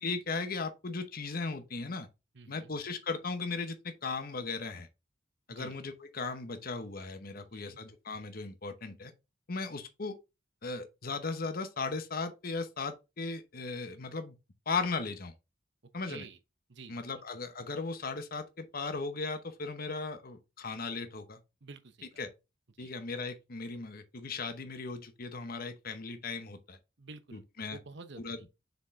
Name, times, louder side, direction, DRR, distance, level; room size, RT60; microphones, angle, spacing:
voice 1, 0.0-2.1 2.5-4.9 5.5-9.1 9.5-10.2 10.6-14.4 14.7-15.3 15.9-16.2 16.9-21.4 22.2-22.3 22.8-26.8 27.3-27.8 28.2-28.4, left 4 dB, 50° left, 0.9 m, -37 dB
voice 2, 2.3-2.7 5.5-5.8 7.3-7.8 16.1-16.4 16.7-17.0 21.6-22.2 22.8-22.9 27.0-27.4 27.7-28.5, right 4 dB, 65° right, 0.9 m, -49 dB
6.7 x 4.7 x 3.6 m
head